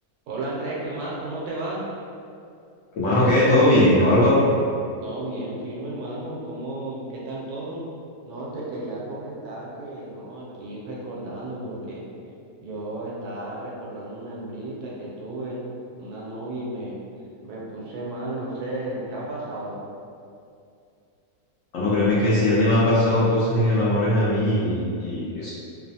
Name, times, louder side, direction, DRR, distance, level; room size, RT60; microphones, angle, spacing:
voice 1, 0.3-1.9 5.0-7.8 8.2-12.0 12.6-15.6 15.9-17.0 17.4-19.8, right 2 dB, 80° right, -5 dB, 1.1 m, -33 dB
voice 2, 2.9-4.4 21.7-25.5, left 1 dB, 65° left, -9 dB, 0.8 m, -19 dB
2.9 x 2.0 x 2.7 m, 2.5 s
omnidirectional pair, 1.7 m